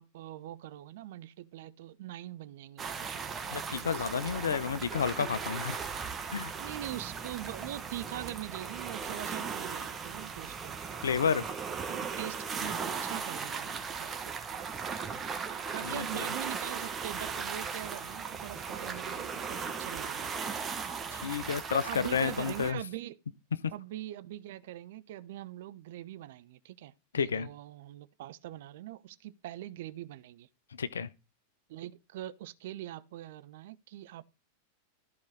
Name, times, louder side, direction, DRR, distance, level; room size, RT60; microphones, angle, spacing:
voice 1, 0.0-4.0 6.6-10.8 11.9-14.3 15.7-20.6 21.7-23.2 23.7-30.5 31.7-34.2, right 13 dB, 55° right, 0.6 m, -43 dB
sound 1, 2.8-22.7, right 6 dB, 25° right, 1.3 m, -37 dB
voice 2, 3.5-5.8 6.3-6.5 11.0-11.4 15.8-16.0 21.1-22.8 27.1-27.5 30.8-31.1, left 6 dB, 70° left, 0.6 m, -31 dB
13.5 x 4.8 x 4.0 m
figure-of-eight pair, 90°, 0 cm